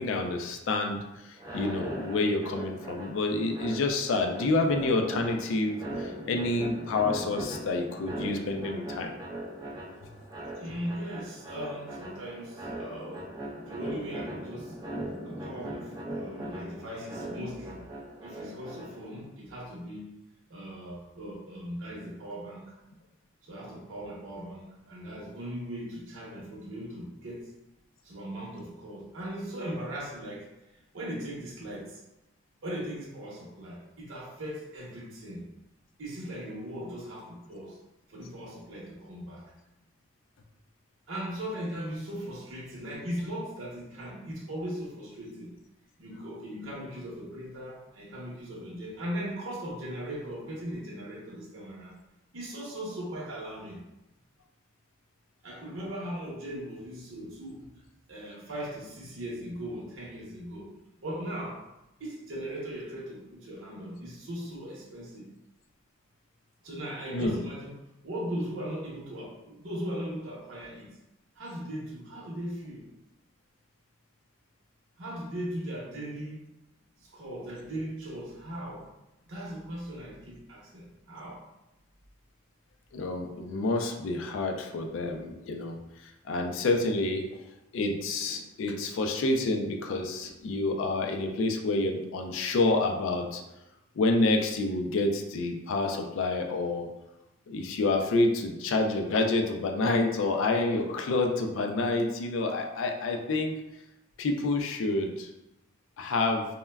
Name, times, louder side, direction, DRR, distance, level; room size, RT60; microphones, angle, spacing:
voice 1, 0.0-9.1 67.1-67.4 82.9-85.8 86.3-87.2 87.7-93.4 94.0-96.9 97.5-103.6 104.2-105.3 106.0-106.5, left 2 dB, 65° left, 3 dB, 0.3 m, -28 dB
sound 1, 1.3-19.2, right 1 dB, 20° right, 0.3 m, -40 dB
voice 2, 10.6-13.3 13.6-14.8 15.2-17.9 18.2-20.2 20.5-22.7 23.4-27.5 28.0-30.5 30.9-32.0 32.6-35.5 36.0-37.8 38.1-39.5 41.1-45.6 46.0-51.9 52.3-53.8 55.4-57.7 58.1-60.7 61.0-61.6 62.0-65.3 66.6-67.8 68.0-70.9 71.3-72.9 75.0-76.4 77.0-78.9 79.3-81.4, equal, 65° right, -6 dB, 0.8 m, -38 dB
3.3 x 2.1 x 2.2 m, 0.93 s
head